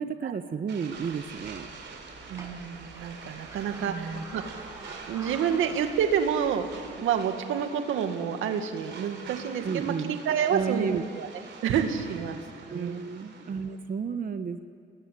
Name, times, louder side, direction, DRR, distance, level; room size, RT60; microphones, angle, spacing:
voice 1, 0.0-1.7 3.9-4.2 9.6-10.2 10.5-11.0 12.7-14.6, right 6 dB, 45° right, 8 dB, 1.1 m, -32 dB
sound 1, 0.7-13.7, right 5 dB, 65° right, 4.1 m, -46 dB
sound 2, 1.1-7.1, right 2 dB, 15° right, 6.8 m, -48 dB
voice 2, 2.3-4.4 5.1-11.3 11.6-12.4 12.7-13.0, right 8 dB, 85° right, 6 dB, 2.1 m, -29 dB
28.5 x 20.5 x 8.4 m, 2.2 s
cardioid pair, 90°, 20 cm